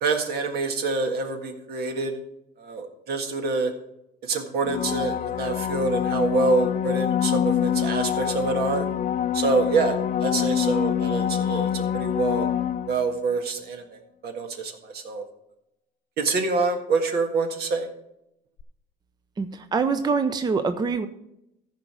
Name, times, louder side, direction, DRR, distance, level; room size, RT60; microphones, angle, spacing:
voice 1, 0.0-2.1 2.6-3.7 4.2-8.9 9.3-12.5 12.9-15.2 16.2-17.9, right 3 dB, 70° right, 5 dB, 1.8 m, -26 dB
sound 1, 4.6-13.3 18.6-18.7, left 10 dB, 50° left, 0.6 m, -26 dB
voice 2, 19.4-21.1, right 5 dB, 25° right, 9 dB, 0.6 m, -24 dB
14.0 x 5.0 x 6.1 m, 0.83 s
cardioid pair, 110°, 17 cm